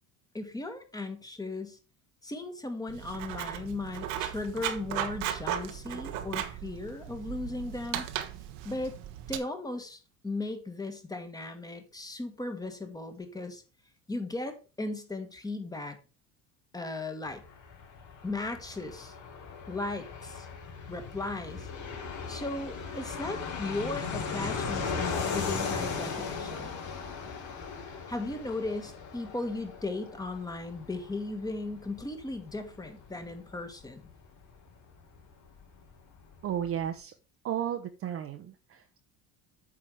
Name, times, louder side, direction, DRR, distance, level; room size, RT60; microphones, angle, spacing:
voice 1, 0.3-1.8 2.2-8.1 8.6-9.0 9.3-13.6 14.1-16.0 16.7-17.4 18.2-19.1 19.7-20.5 20.9-21.7 22.3-26.7 28.1-34.0, left 2 dB, 10° left, 6 dB, 1.6 m, -37 dB
Writing, 2.9-9.4, right 11 dB, 85° right, 1.2 m, -36 dB
Fixed-wing aircraft airplane, 17.3-35.6 35.9-36.0 36.2-36.9, left 5 dB, 60° left, 3.7 m, -38 dB
voice 2, 36.4-37.1 37.4-39.0, right 9 dB, 40° right, 6 dB, 0.9 m, -34 dB
8.6 x 4.9 x 4.9 m, 0.33 s
cardioid pair, 125°, 33 cm